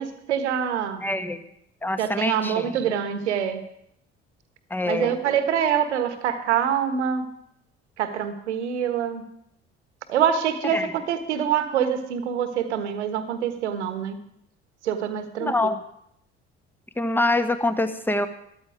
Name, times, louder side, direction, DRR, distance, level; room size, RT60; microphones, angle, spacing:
voice 1, 0.0-1.0 2.0-3.6 4.9-7.3 8.0-9.2 10.1-14.2 14.8-15.5, right 8 dB, 85° right, 10 dB, 1.3 m, -25 dB
voice 2, 1.0-1.4 1.8-2.8 4.7-5.1 10.6-10.9 15.4-15.8 16.9-18.3, left 2 dB, 5° left, 9 dB, 1.3 m, -25 dB
13.5 x 12.5 x 5.0 m, 0.75 s
hypercardioid pair, 55°, 34 cm